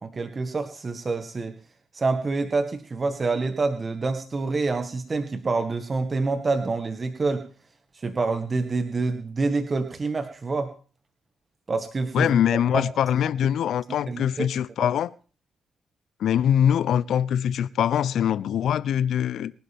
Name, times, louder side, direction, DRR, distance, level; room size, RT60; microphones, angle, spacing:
voice 1, 0.0-1.6 1.9-7.5 7.9-10.7 11.7-12.3 12.7-12.9 14.1-14.5 14.8-14.9, right 3 dB, 35° right, 1.8 m, -27 dB
voice 2, 12.1-15.1 16.2-19.5, left 9 dB, 65° left, 0.7 m, -23 dB
24.5 x 11.5 x 3.6 m
supercardioid pair, 55°, 0 cm